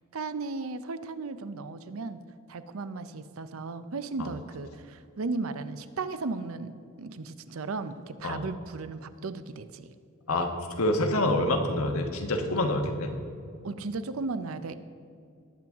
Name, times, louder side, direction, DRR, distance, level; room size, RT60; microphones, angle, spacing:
voice 1, 0.1-2.2 2.5-6.7 7.0-9.9 13.6-14.7, right 3 dB, 75° right, 12 dB, 0.6 m, -35 dB
voice 2, 10.3-13.1, left 1 dB, 85° left, 4 dB, 1.2 m, -27 dB
19.5 x 7.7 x 3.5 m, 2.4 s
head